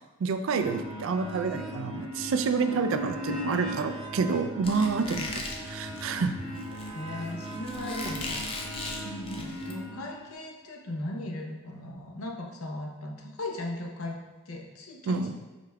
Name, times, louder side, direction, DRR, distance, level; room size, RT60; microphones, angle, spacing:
voice 1, 0.2-6.3 15.1-15.3, right 5 dB, 70° right, 9 dB, 0.3 m, -28 dB
sound 1, 0.6-10.3, equal, 60° left, 1.1 m, -38 dB
Squeak, 4.6-9.7, left 2 dB, 25° left, 0.3 m, -38 dB
voice 2, 6.9-8.7 9.0-14.2 14.5-15.3, left 1 dB, 90° left, 1 dB, 0.7 m, -38 dB
5.1 x 4.5 x 2.2 m, 1.2 s
head